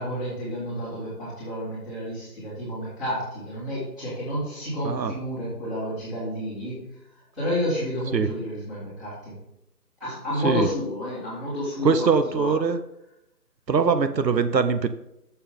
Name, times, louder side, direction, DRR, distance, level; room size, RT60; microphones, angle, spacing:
voice 1, 0.0-6.8 7.3-9.4 10.0-12.5, equal, ahead, -14 dB, 2.1 m, -30 dB
voice 2, 11.8-12.8 13.7-14.9, right 5 dB, 80° right, 10 dB, 0.9 m, -22 dB
10.5 x 7.0 x 3.7 m, 0.84 s
figure-of-eight pair, 165°, 50 cm